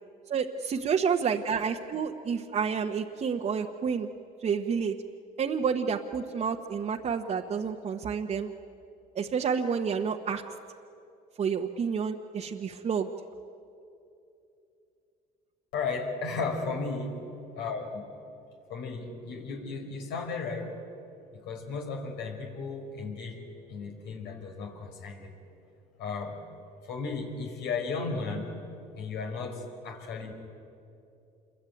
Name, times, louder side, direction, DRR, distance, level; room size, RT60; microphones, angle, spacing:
voice 1, 0.3-4.1 4.4-5.0 5.4-8.5 9.1-10.4 11.4-13.1, right 6 dB, 40° right, 2 dB, 1.1 m, -29 dB
voice 2, 15.7-17.2 17.5-18.0 18.7-20.7 21.3-23.4 23.7-25.3 26.0-26.4 26.8-28.6 29.0-30.3, left 4 dB, 85° left, 2 dB, 4.7 m, -35 dB
27.5 x 22.5 x 9.2 m, 2.7 s
cardioid pair, 110°, 17 cm